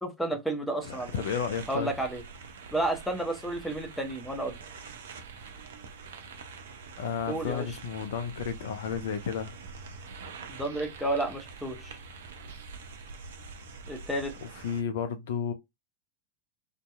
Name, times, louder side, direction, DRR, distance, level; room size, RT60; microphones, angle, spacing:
voice 1, 0.0-1.1 1.7-2.2 2.7-4.6 7.3-7.7 10.5-12.0 13.9-14.3, right 1 dB, 5° left, 0.7 m, -31 dB
voice 2, 0.8-1.9 7.0-9.5 14.6-15.5, left 7 dB, 55° left, 0.4 m, -32 dB
sound 1, 0.8-14.8, right 4 dB, 60° right, 0.5 m, -45 dB
2.7 x 2.2 x 2.2 m
figure-of-eight pair, 90°, 0 cm